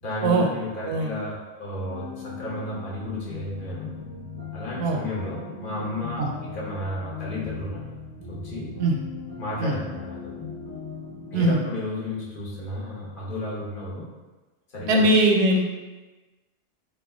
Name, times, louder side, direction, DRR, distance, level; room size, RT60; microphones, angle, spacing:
voice 1, 0.0-3.9 4.5-7.9 8.3-8.7 9.4-10.3 11.3-14.1 14.7-15.0, left 2 dB, 50° left, -6 dB, 1.0 m, -33 dB
sound 1, 1.8-11.5, left 4 dB, 20° left, 0.6 m, -38 dB
voice 2, 14.9-15.7, right 2 dB, 85° right, 1 dB, 0.9 m, -20 dB
3.4 x 2.1 x 3.4 m, 1.2 s
omnidirectional pair, 1.2 m